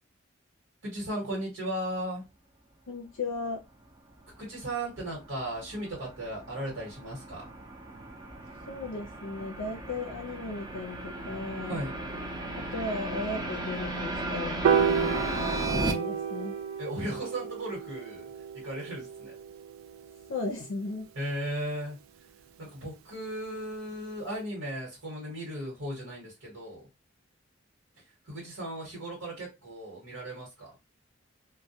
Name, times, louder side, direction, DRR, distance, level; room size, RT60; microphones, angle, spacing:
voice 1, 0.8-2.3 4.4-7.4 11.6-11.9 16.8-18.3 18.6-19.4 21.1-22.0 22.6-26.9 28.0-30.7, right 1 dB, 70° right, -3 dB, 1.1 m, -36 dB
voice 2, 2.9-3.6 8.7-11.8 12.6-16.6 20.3-21.1, left 3 dB, 85° left, 1 dB, 0.5 m, -36 dB
sound 1, 4.4-15.9, right 2 dB, 20° right, 0.5 m, -36 dB
Piano, 14.6-21.0, right 7 dB, 85° right, 0.3 m, -31 dB
2.2 x 2.1 x 2.7 m, 0.24 s
head